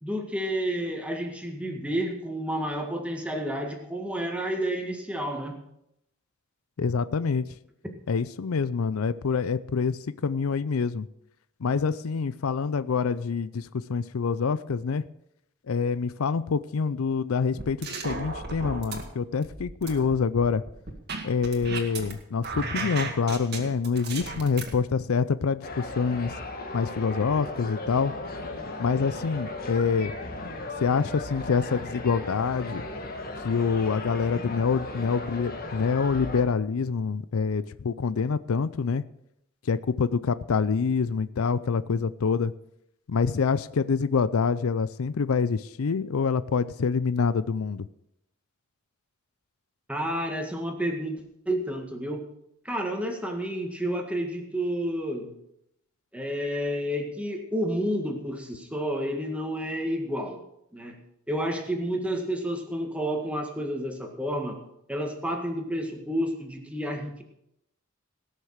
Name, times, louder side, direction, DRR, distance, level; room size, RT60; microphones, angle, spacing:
voice 1, 0.0-5.6 49.9-51.2 51.5-52.2 52.7-55.3 56.1-60.4 60.7-61.0 61.3-64.6 64.9-67.2, equal, 5° right, 2 dB, 1.8 m, -30 dB
voice 2, 6.8-7.5 8.1-11.1 11.6-15.0 15.7-20.6 21.2-26.3 26.7-28.1 28.8-30.1 30.8-32.8 33.4-39.0 39.7-42.5 43.1-47.9, left 5 dB, 85° left, 16 dB, 0.5 m, -26 dB
sound 1, 17.6-19.0 19.4-22.1 22.4-24.7, right 3 dB, 50° right, 2.0 m, -34 dB
sound 2, 25.6-36.4, left 2 dB, 45° left, 1.9 m, -36 dB
18.0 x 6.6 x 6.5 m, 0.79 s
head